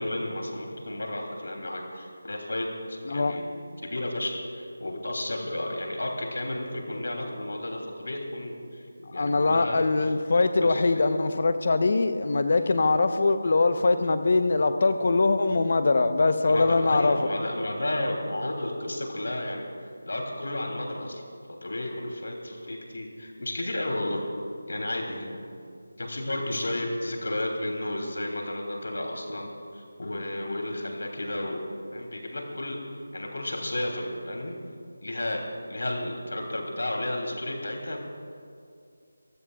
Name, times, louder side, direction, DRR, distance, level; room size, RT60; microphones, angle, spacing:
voice 1, 0.0-3.4 3.9-10.1 10.6-11.0 16.4-19.7 20.0-21.2 21.6-24.3 24.7-25.3 26.0-31.6 31.9-32.8 33.1-34.5 35.0-38.0, left 1 dB, 75° left, 1 dB, 3.1 m, -32 dB
voice 2, 3.1-3.4 9.1-17.3, left 3 dB, 50° left, 9 dB, 0.9 m, -22 dB
29.0 x 15.5 x 2.4 m, 2.3 s
figure-of-eight pair, 170°, 0 cm